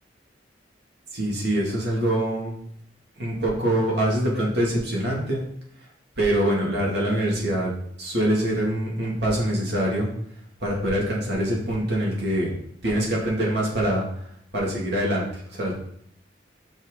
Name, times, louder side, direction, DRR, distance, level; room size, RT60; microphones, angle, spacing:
voice 1, 1.1-2.5 3.2-5.4 6.2-7.7 8.0-10.1 10.6-12.5 12.8-14.0 14.5-15.7, right 1 dB, 60° right, -3 dB, 2.6 m, -24 dB
6.4 x 5.8 x 4.0 m, 0.67 s
head